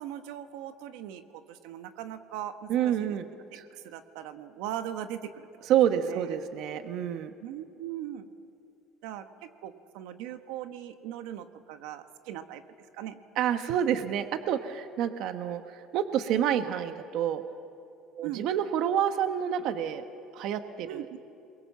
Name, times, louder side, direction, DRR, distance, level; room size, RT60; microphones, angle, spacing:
voice 1, 0.0-3.2 3.7-5.7 6.0-6.4 7.4-8.3 9.0-12.6 12.9-13.2 18.2-18.5 20.9-21.2, right 11 dB, 85° right, 8 dB, 1.3 m, -40 dB
voice 2, 2.7-3.3 3.5-3.6 5.7-7.3 13.4-17.4 18.1-20.0 20.3-21.1, right 9 dB, 60° right, 8 dB, 1.1 m, -28 dB
28.0 x 22.5 x 7.3 m, 2.7 s
cardioid pair, 155°, 0 cm